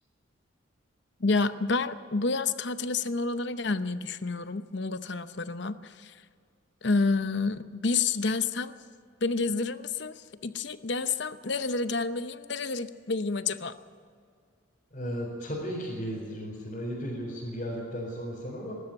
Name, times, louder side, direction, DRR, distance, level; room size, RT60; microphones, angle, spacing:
voice 1, 1.2-6.2 6.8-8.8 9.2-13.8, left 3 dB, 60° left, 12 dB, 0.8 m, -29 dB
voice 2, 14.9-18.7, equal, 40° left, -6 dB, 4.4 m, -35 dB
20.0 x 13.0 x 9.9 m, 2.2 s
head